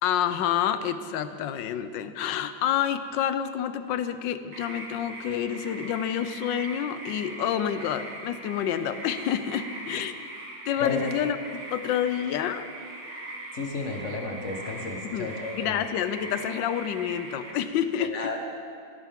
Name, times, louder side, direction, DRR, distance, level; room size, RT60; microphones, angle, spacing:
voice 1, 0.0-10.3 10.7-12.6 15.1-18.3, left 9 dB, 75° left, 11 dB, 1.2 m, -28 dB
sound 1, 4.5-17.5, right 2 dB, 90° right, 2.8 m, -41 dB
voice 2, 13.5-15.8 18.0-18.4, left 3 dB, 40° left, 2 dB, 1.4 m, -33 dB
17.0 x 12.0 x 3.6 m, 2.2 s
omnidirectional pair, 2.2 m